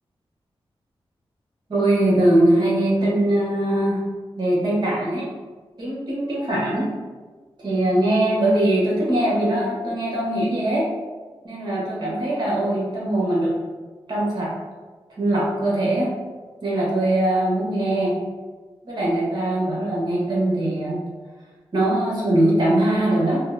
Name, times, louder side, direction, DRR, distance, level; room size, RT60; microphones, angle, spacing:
voice 1, 1.7-4.0 4.3-5.3 5.8-6.9 7.6-10.9 11.4-13.5 14.1-14.5 15.2-16.1 16.6-18.1 18.8-21.0 21.7-23.4, right 1 dB, 45° right, -5 dB, 0.9 m, -21 dB
3.6 x 2.2 x 2.4 m, 1.4 s
wide cardioid pair, 155°, 10 cm